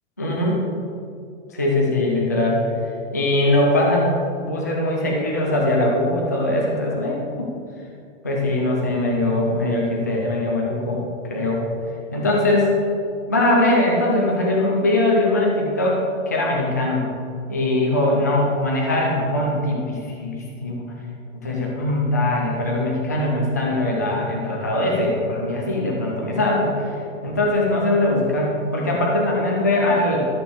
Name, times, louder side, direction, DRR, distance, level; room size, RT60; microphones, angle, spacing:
voice 1, 0.2-0.6 1.5-4.1 4.4-7.5 8.2-11.6 12.1-12.7 13.3-16.0 16.3-17.1 17.5-20.8 21.4-30.3, left 1 dB, 15° left, -3 dB, 0.3 m, -21 dB
13.0 x 6.7 x 4.1 m, 2.4 s
hypercardioid pair, 170°, 37 cm